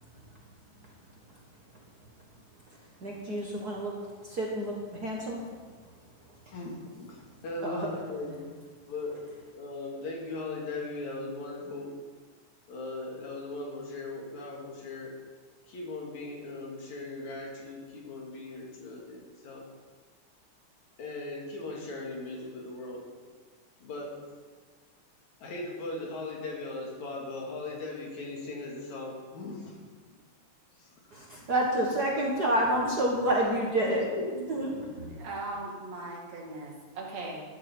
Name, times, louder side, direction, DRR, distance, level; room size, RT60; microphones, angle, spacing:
voice 1, 3.0-3.9 4.2-5.4 5.8-5.9 6.4-6.5 7.6-7.9 31.1-34.0 34.5-35.1, right 1 dB, 45° right, -2 dB, 1.5 m, -29 dB
voice 2, 6.5-7.2 7.4-8.4 8.9-11.9 12.7-15.1 15.7-19.6 21.0-23.0 23.8-24.1 25.4-29.8 30.8-30.9 33.9-35.1, left 2 dB, 75° left, -2 dB, 3.5 m, -38 dB
voice 3, 35.1-37.4, right 2 dB, 65° right, -2 dB, 3.2 m, -39 dB
13.0 x 10.5 x 4.5 m, 1.5 s
omnidirectional pair, 3.3 m